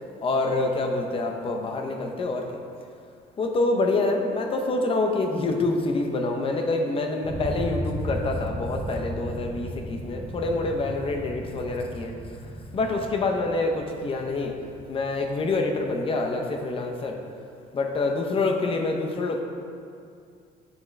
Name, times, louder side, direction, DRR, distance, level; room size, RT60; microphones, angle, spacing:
voice 1, 0.2-2.6 3.4-12.1 12.7-14.5 14.9-17.2 17.7-19.4, left 2 dB, 35° left, 3 dB, 0.7 m, -26 dB
sound 1, 7.2-16.1, equal, 25° right, 1.3 m, -35 dB
9.6 x 3.7 x 3.2 m, 2.4 s
cardioid pair, 135°, 16 cm